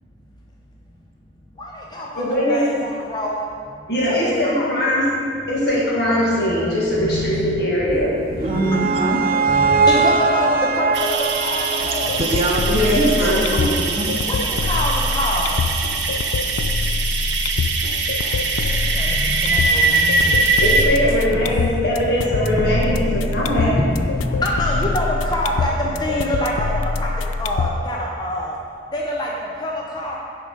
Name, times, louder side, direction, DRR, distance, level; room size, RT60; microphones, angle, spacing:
voice 1, 1.6-3.5 4.1-4.7 6.5-8.8 9.2-12.2 14.2-15.6 18.7-28.5 28.9-29.3 29.6-30.2, left 1 dB, 20° left, -3 dB, 0.6 m, -26 dB
voice 2, 2.2-2.6 3.9-5.1 5.5-8.1 12.7-13.8 20.6-23.8, equal, 55° left, -6 dB, 1.9 m, -21 dB
sound 1, 8.2-13.3, right 4 dB, 50° right, 0.4 m, -21 dB
voice 3, 8.4-9.2 12.2-14.1, right 1 dB, 35° right, -1 dB, 0.8 m, -23 dB
sound 2, 10.9-20.9, right 3 dB, 70° right, 0.8 m, -22 dB
sound 3, 11.8-27.8, left 4 dB, 90° left, 0.4 m, -25 dB
9.9 x 3.8 x 5.1 m, 2.2 s
head